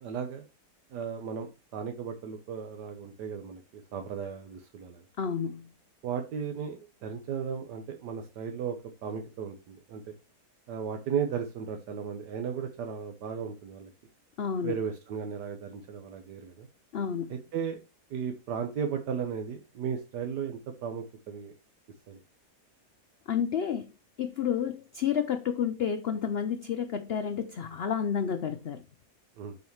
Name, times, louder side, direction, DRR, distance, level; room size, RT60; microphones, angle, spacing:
voice 1, 0.0-0.4 0.9-5.0 6.0-8.8 9.0-10.1 10.7-13.9 14.6-16.7 17.3-17.8 18.1-21.5 22.1-22.2 29.4-29.6, right 7 dB, 85° right, 1.5 m, -35 dB
voice 2, 5.2-5.7 14.4-14.8 16.9-17.4 23.3-23.9 24.2-28.8, left 8 dB, 85° left, 0.5 m, -30 dB
12.0 x 4.7 x 3.1 m
omnidirectional pair, 1.8 m